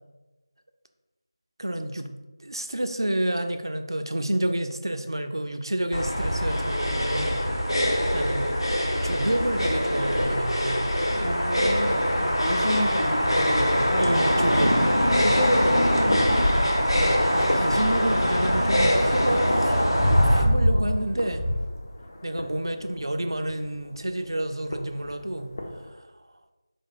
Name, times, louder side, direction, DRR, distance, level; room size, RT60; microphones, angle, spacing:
voice 1, 1.6-2.1 2.4-7.5 8.1-8.6 9.0-10.9 14.0-14.8 17.3-19.9 20.3-21.4 22.2-25.5 25.7-26.1, right 1 dB, 70° right, 6 dB, 0.5 m, -29 dB
sound 1, 5.9-20.4, equal, 80° left, 1.0 m, -23 dB
sound 2, 6.2-21.6, equal, 5° left, 0.8 m, -31 dB
voice 2, 11.1-14.1 14.6-16.7 16.9-17.3, equal, 55° left, -1 dB, 1.1 m, -31 dB
sound 3, 14.7-25.9, left 1 dB, 35° left, 0.5 m, -39 dB
4.9 x 2.1 x 4.6 m, 1.1 s
figure-of-eight pair, 165°, 2 cm